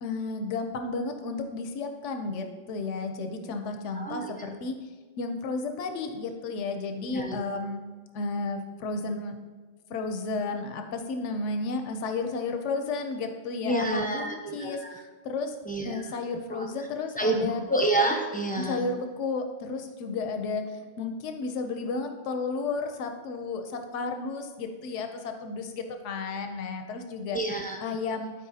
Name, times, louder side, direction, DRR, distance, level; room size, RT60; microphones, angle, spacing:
voice 1, 0.0-4.8 5.2-7.8 8.1-9.4 9.9-15.5 15.8-17.6 18.6-27.4 27.8-28.3, left 3 dB, 80° left, 6 dB, 1.0 m, -33 dB
voice 2, 4.0-4.4 7.1-7.4 13.6-14.9 15.6-16.0 16.5-16.7 17.2-18.8 27.3-27.8, right 1 dB, 10° left, 1 dB, 0.6 m, -28 dB
12.0 x 4.5 x 2.7 m, 1.4 s
omnidirectional pair, 1.2 m